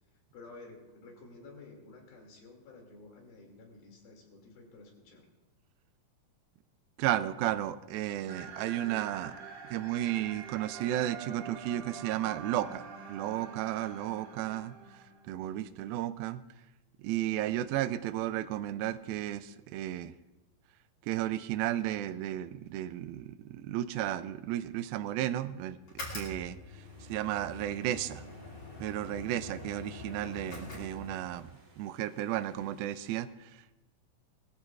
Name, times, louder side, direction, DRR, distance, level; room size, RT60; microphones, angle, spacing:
voice 1, 0.3-5.3, left 3 dB, 80° left, 1 dB, 4.3 m, -52 dB
voice 2, 7.0-9.4 9.7-16.4 17.0-20.1 21.0-25.8 26.1-28.2 28.8-33.8, right 13 dB, 90° right, 13 dB, 2.4 m, -34 dB
sound 1, 8.3-15.4, right 6 dB, 65° right, 2.9 m, -46 dB
sound 2, 25.8-31.5, left 2 dB, 30° left, 2.9 m, -45 dB
sound 3, 26.8-33.2, right 3 dB, 50° right, 3.2 m, -62 dB
21.0 x 14.5 x 2.4 m, 1.0 s
omnidirectional pair, 4.1 m